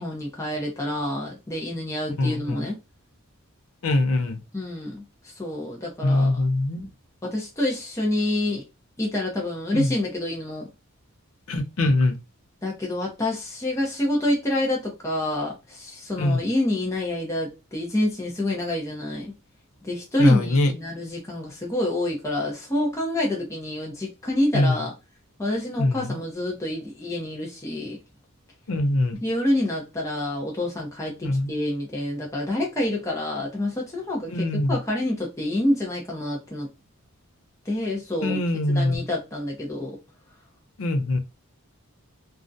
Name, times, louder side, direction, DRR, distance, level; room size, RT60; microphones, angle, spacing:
voice 1, 0.0-2.8 4.5-6.4 7.2-8.6 9.0-10.7 12.6-19.3 19.8-24.9 25.4-28.0 29.2-36.7 37.7-38.4 38.7-40.0, left 1 dB, 15° left, 0.5 m, -27 dB
voice 2, 2.2-2.7 3.8-4.4 6.0-6.9 9.7-9.9 11.5-12.2 16.2-16.4 20.2-20.7 24.5-24.8 25.8-26.2 28.7-29.2 31.2-31.5 34.3-34.8 38.2-39.0 40.8-41.2, left 2 dB, 65° left, 0.5 m, -22 dB
2.3 x 2.1 x 2.5 m
head